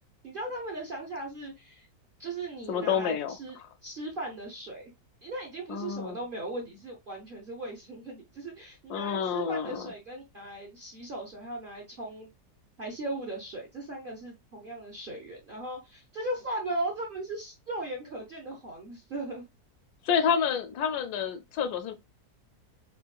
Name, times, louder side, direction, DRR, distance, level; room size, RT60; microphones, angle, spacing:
voice 1, 0.2-1.9 2.2-3.6 3.8-4.9 5.2-12.3 12.8-19.4, right 1 dB, 45° right, 0.7 m, -38 dB
voice 2, 2.7-3.7 5.7-6.2 8.9-9.9 20.0-21.9, left 7 dB, 75° left, 1.1 m, -29 dB
4.4 x 2.4 x 2.3 m
omnidirectional pair, 1.8 m